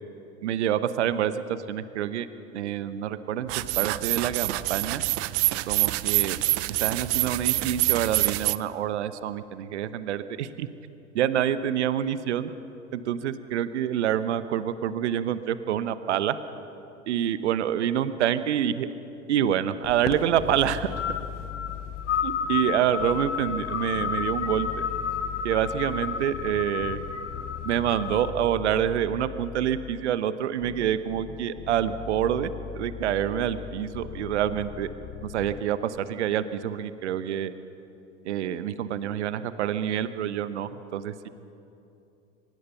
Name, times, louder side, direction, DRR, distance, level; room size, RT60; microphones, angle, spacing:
voice 1, 0.4-2.3 2.5-5.0 5.7-6.4 6.8-10.7 11.1-12.5 12.9-16.4 17.1-18.9 19.3-20.9 22.2-24.7 25.4-27.0 27.6-34.9 35.2-37.5 38.2-41.3, right 10 dB, 70° right, 13 dB, 1.0 m, -27 dB
sound 1, 3.5-8.6, right 21 dB, 40° right, 0.6 m, -26 dB
sound 2, 19.8-28.3, left 7 dB, 75° left, 1.3 m, -32 dB
sound 3, 20.4-22.5 23.0-30.1 30.6-35.6, left 9 dB, 30° left, 1.1 m, -40 dB
23.5 x 20.0 x 5.7 m, 2.8 s
figure-of-eight pair, 85°, 36 cm